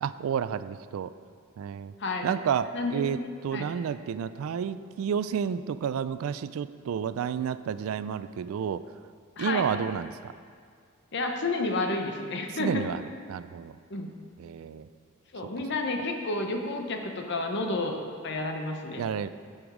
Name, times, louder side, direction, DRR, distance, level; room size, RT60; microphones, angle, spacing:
voice 1, 0.0-1.1 1.6-1.9 2.2-3.2 3.4-8.8 9.4-10.3 12.6-13.0 13.3-13.7 14.4-14.9 19.0-19.3, right 7 dB, 75° right, 15 dB, 0.3 m, -30 dB
voice 2, 2.0-2.4 2.7-3.7 9.4-9.7 11.1-12.8 13.9-14.1 15.3-18.0 18.2-19.0, left 2 dB, 55° left, 4 dB, 0.8 m, -31 dB
7.9 x 7.1 x 4.9 m, 2.1 s
head